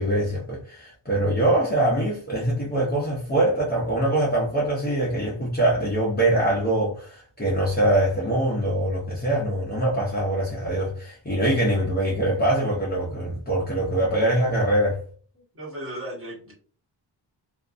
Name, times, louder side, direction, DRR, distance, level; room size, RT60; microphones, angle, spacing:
voice 1, 0.0-15.0, right 1 dB, 20° left, 0.6 m, -23 dB
voice 2, 15.6-16.5, right 1 dB, 30° right, 1.3 m, -35 dB
2.6 x 2.4 x 2.4 m
wide cardioid pair, 155°, 45 cm